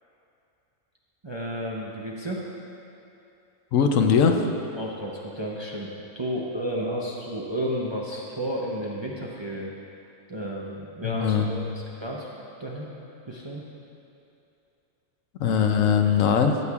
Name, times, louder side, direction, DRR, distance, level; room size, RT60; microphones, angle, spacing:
voice 1, 1.2-2.4 4.8-9.7 10.3-11.7 12.0-12.3 12.6-12.9 13.3-13.6, equal, 30° right, -4 dB, 0.6 m, -32 dB
voice 2, 3.7-4.4 11.0-11.7 15.4-16.6, left 6 dB, 80° left, 4 dB, 1.1 m, -21 dB
13.5 x 8.4 x 2.4 m, 2.7 s
omnidirectional pair, 1.4 m